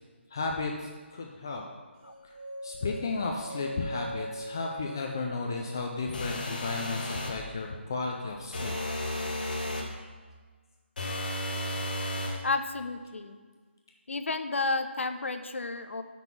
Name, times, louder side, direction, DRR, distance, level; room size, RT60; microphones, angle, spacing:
voice 1, 0.3-1.6 2.6-8.7, left 3 dB, 20° left, 1 dB, 0.3 m, -33 dB
sound 1, 2.0-6.1, equal, 20° right, 1.1 m, -41 dB
sound 2, 6.1-7.4 8.5-9.9 11.0-12.4, left 1 dB, 45° left, 1.1 m, -33 dB
voice 2, 12.4-13.4 14.1-16.0, left 3 dB, 85° left, 9 dB, 0.6 m, -31 dB
6.0 x 5.3 x 5.9 m, 1.4 s
hypercardioid pair, 175°, 7 cm